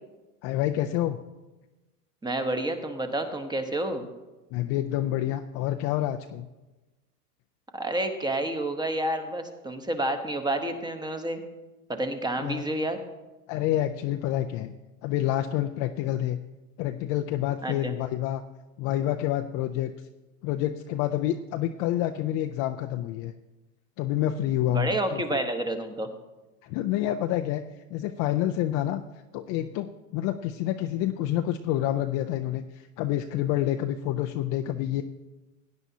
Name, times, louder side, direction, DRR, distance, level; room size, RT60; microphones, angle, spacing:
voice 1, 0.4-1.2 4.5-6.5 12.4-12.6 13.5-14.7 15.0-16.4 16.8-18.4 18.8-19.9 20.4-23.3 24.0-25.4 26.6-27.6 27.9-29.0 29.3-35.0, left 12 dB, 35° left, 6 dB, 0.4 m, -28 dB
voice 2, 2.2-4.1 7.7-11.4 11.9-13.0 17.6-17.9 24.7-26.1, right 1 dB, 10° right, 7 dB, 1.0 m, -29 dB
17.0 x 9.8 x 2.8 m, 1.1 s
hypercardioid pair, 115°, 46 cm